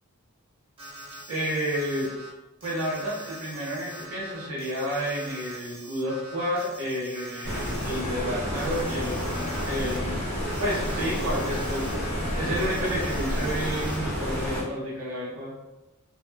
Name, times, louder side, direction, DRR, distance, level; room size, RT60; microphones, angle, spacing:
Alarm, 0.8-2.3 2.6-10.0 10.4-12.1 12.5-14.2, right 1 dB, 25° right, 0.4 m, -44 dB
voice 1, 1.3-2.1 2.6-10.2 10.6-12.1 12.4-15.5, equal, 75° right, -6 dB, 0.7 m, -30 dB
Stream, 7.4-14.6, equal, 50° right, 1.0 m, -30 dB
sound 1, 7.9-12.5, left 2 dB, 35° left, 0.4 m, -45 dB
2.2 x 2.1 x 3.1 m, 1.0 s
head